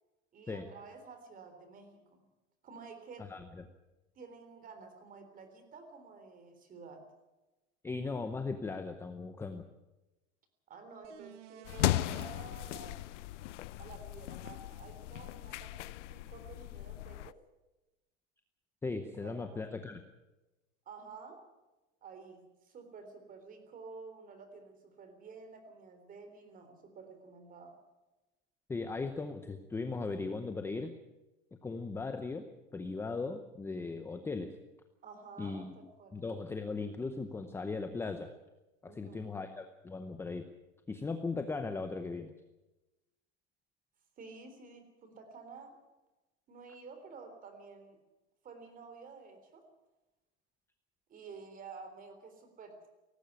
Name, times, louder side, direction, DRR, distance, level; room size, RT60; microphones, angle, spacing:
voice 1, 0.3-2.2 2.6-3.3 4.2-7.0 10.7-13.2 13.8-15.7 16.0-17.4 19.2-19.6 20.9-21.4 22.0-27.8 35.0-36.2 38.9-39.4 44.2-45.8 46.5-48.0 48.4-49.6 51.1-52.9, right 4 dB, 25° right, 8 dB, 3.6 m, -51 dB
voice 2, 3.3-3.6 7.8-9.6 18.8-20.0 28.7-30.9 31.6-34.5 35.4-35.7 36.1-38.3 38.8-40.5 40.9-42.3, left 3 dB, 5° left, 7 dB, 0.7 m, -38 dB
sound 1, 11.0-12.3 16.2-16.3, right 13 dB, 85° right, 1.7 m, -53 dB
sound 2, 11.6-17.3, left 15 dB, 85° left, 0.8 m, -37 dB
18.0 x 15.5 x 9.3 m, 1.1 s
supercardioid pair, 155°, 35 cm